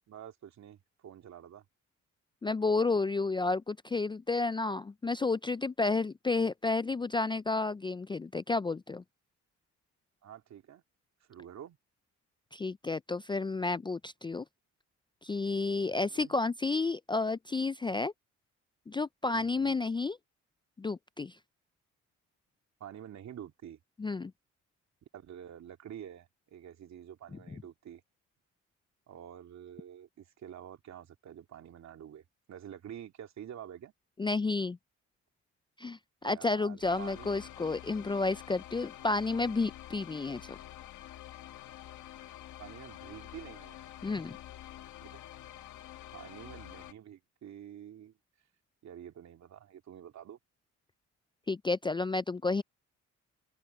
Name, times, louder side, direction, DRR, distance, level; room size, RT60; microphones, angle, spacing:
voice 1, 0.1-1.6 10.2-10.8 11.3-11.8 15.9-16.3 19.3-19.8 22.8-23.8 25.1-28.0 29.1-33.9 36.2-37.4 42.6-43.9 45.0-45.2 45.5-45.7 46.1-48.1 48.8-50.4, right 10 dB, 65° right, 2.7 m, -48 dB
voice 2, 2.4-9.0 12.5-14.4 15.2-18.1 18.9-20.2 20.8-21.4 24.0-24.3 34.2-34.8 35.8-40.6 44.0-44.3 51.5-52.6, left 3 dB, 15° left, 0.4 m, -31 dB
sound 1, 36.8-46.9, left 13 dB, 85° left, 1.7 m, -48 dB
cardioid pair, 90°, 30 cm